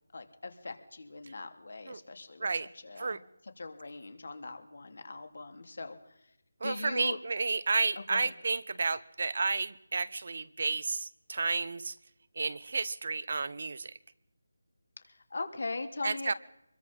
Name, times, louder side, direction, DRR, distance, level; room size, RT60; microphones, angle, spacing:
voice 1, 0.1-3.2 3.6-6.2 6.6-7.2 8.1-8.3 15.0-16.4, left 3 dB, 55° left, 6 dB, 3.3 m, -41 dB
voice 2, 6.6-11.9 12.4-13.9 16.0-16.3, right 4 dB, 45° right, 17 dB, 1.0 m, -31 dB
26.0 x 21.5 x 5.6 m, 0.86 s
figure-of-eight pair, 175°, 0 cm